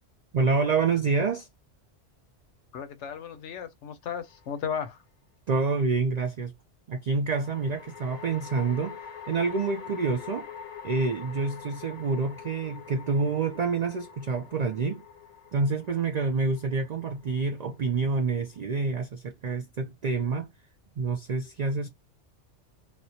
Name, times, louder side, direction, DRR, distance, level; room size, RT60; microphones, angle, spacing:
voice 1, 0.3-1.5 5.5-6.5 6.9-9.0 9.3-10.5 10.8-15.0 15.5-20.5 21.0-21.9, right 4 dB, 75° right, 0.3 m, -27 dB
voice 2, 2.7-5.0, left 7 dB, 75° left, 0.9 m, -35 dB
sound 1, 4.1-4.8 7.3-18.6, left 7 dB, 50° left, 0.7 m, -45 dB
4.1 x 2.1 x 2.8 m
omnidirectional pair, 1.2 m